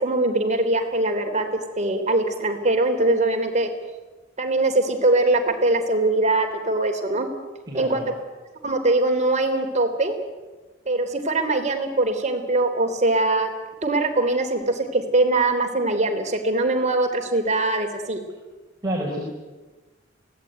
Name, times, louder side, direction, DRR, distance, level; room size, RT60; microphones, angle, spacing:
voice 1, 0.0-1.4 1.8-3.7 4.4-7.3 7.7-8.0 8.6-10.1 10.8-13.5 13.8-18.2, right 2 dB, 35° right, 4 dB, 3.4 m, -22 dB
voice 2, 7.7-8.1 18.8-19.3, right 1 dB, 20° right, -2 dB, 4.7 m, -28 dB
25.0 x 17.5 x 9.2 m, 1.2 s
head